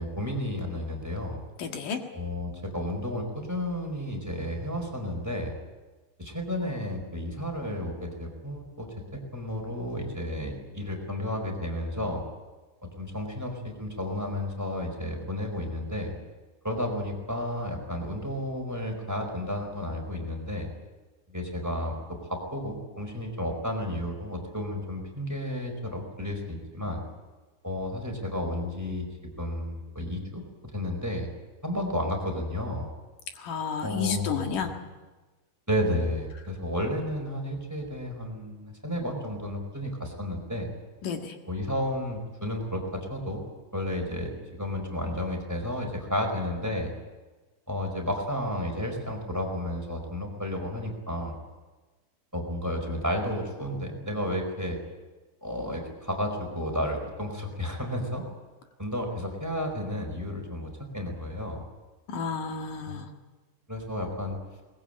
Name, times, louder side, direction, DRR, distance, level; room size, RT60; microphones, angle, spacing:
voice 1, 0.0-1.4 2.1-5.6 6.2-12.2 13.0-16.1 16.6-20.7 21.3-27.0 27.6-29.1 29.4-30.4 30.7-31.3 31.6-32.9 33.8-34.7 35.7-40.7 41.5-43.4 43.7-44.3 44.6-46.9 47.7-51.3 52.3-54.8 55.4-58.2 58.8-61.6 62.8-63.0 63.7-64.4, left 1 dB, 5° right, 3 dB, 4.3 m, -32 dB
voice 2, 1.6-2.0 33.4-34.7 41.0-41.4 62.1-63.0, left 6 dB, 80° left, 4 dB, 3.4 m, -31 dB
21.5 x 20.5 x 8.9 m, 1.2 s
omnidirectional pair, 3.6 m